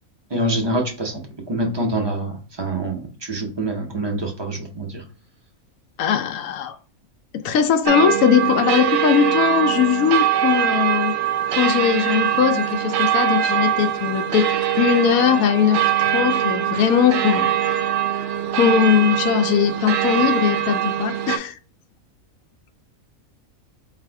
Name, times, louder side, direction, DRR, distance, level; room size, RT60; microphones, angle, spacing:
voice 1, 0.3-1.2 1.5-5.0, right 1 dB, 20° right, 0.8 m, -25 dB
voice 2, 6.0-6.8 7.3-11.1 11.5-14.5 14.8-15.8 16.1-17.7 18.5-21.6, left 8 dB, 80° left, 1.0 m, -20 dB
sound 1, 7.9-21.4, right 10 dB, 65° right, 0.8 m, -22 dB
4.1 x 2.4 x 4.5 m
omnidirectional pair, 1.5 m